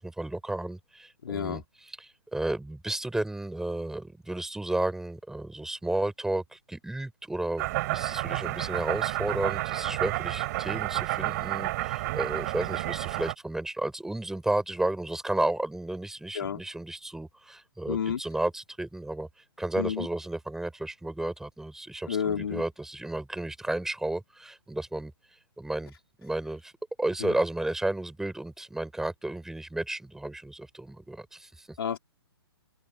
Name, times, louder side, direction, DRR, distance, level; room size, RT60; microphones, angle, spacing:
voice 1, 0.0-19.3 19.6-25.1 25.6-26.7 27.0-31.8, right 2 dB, 5° right, 5.4 m, -33 dB
voice 2, 1.2-1.6 16.3-16.6 17.9-18.2 19.8-20.1 22.1-22.6 27.2-27.3 31.8-32.0, left 7 dB, 65° left, 3.0 m, -30 dB
sound 1, 7.6-13.3, right 19 dB, 40° right, 6.3 m, -30 dB
figure-of-eight pair, 125°, 14 cm